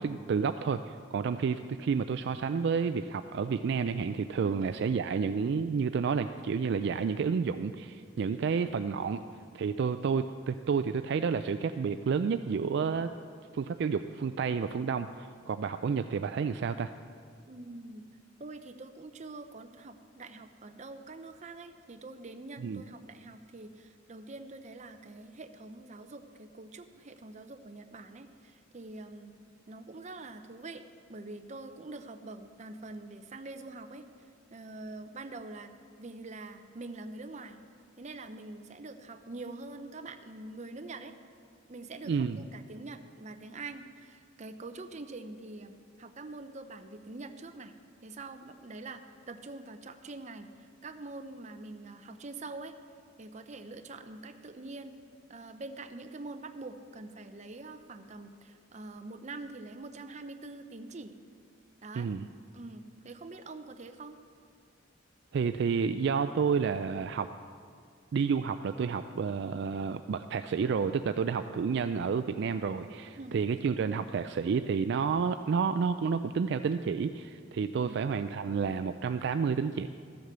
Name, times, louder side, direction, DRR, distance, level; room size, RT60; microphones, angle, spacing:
voice 1, 0.0-9.2 9.5-13.1 13.5-16.9 22.6-22.8 42.0-42.4 62.0-62.3 65.3-67.3 68.1-79.9, right 5 dB, 60° right, 9 dB, 0.3 m, -30 dB
voice 2, 17.5-18.0 18.4-29.3 29.7-30.8 31.1-35.7 36.0-37.6 38.0-41.1 41.7-47.7 48.0-49.0 49.3-52.7 53.2-55.0 55.3-61.1 61.8-62.1 62.5-64.2 73.2-73.4 77.8-78.0, right 2 dB, 35° right, 8 dB, 0.7 m, -45 dB
13.0 x 7.9 x 6.7 m, 2.2 s
head